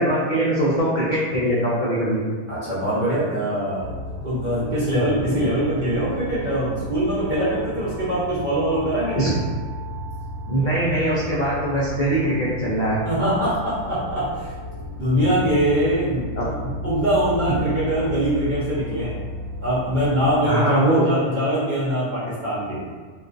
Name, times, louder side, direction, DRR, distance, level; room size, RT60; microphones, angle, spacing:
voice 1, 0.0-2.2 9.1-9.3 10.5-13.0 16.4-16.5 17.5-17.6 20.5-21.1, right 1 dB, 80° left, -8 dB, 0.4 m, -21 dB
voice 2, 2.5-4.0 4.2-9.3 13.0-14.5 15.0-19.1 19.6-22.8, right 1 dB, 45° right, -10 dB, 0.7 m, -23 dB
sound 1, 3.8-20.4, equal, 70° right, 0.9 m, -34 dB
2.3 x 2.3 x 2.4 m, 1.5 s
omnidirectional pair, 1.4 m